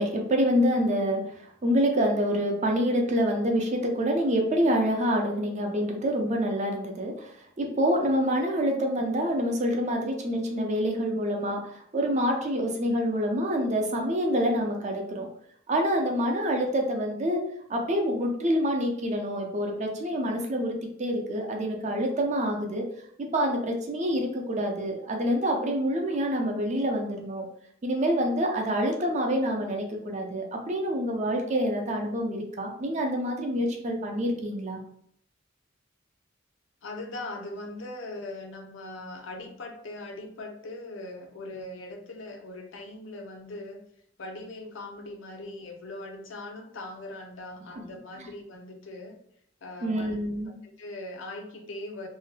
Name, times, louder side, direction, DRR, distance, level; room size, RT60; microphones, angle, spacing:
voice 1, 0.0-15.3 15.7-17.4 17.7-22.9 23.2-27.4 27.8-34.8 48.2-48.3 49.8-50.5, equal, 40° right, 2 dB, 0.5 m, -27 dB
voice 2, 36.8-43.8 44.2-49.2 49.6-50.1 50.6-52.1, left 2 dB, 75° left, 3 dB, 0.5 m, -40 dB
2.6 x 2.1 x 3.2 m, 0.67 s
head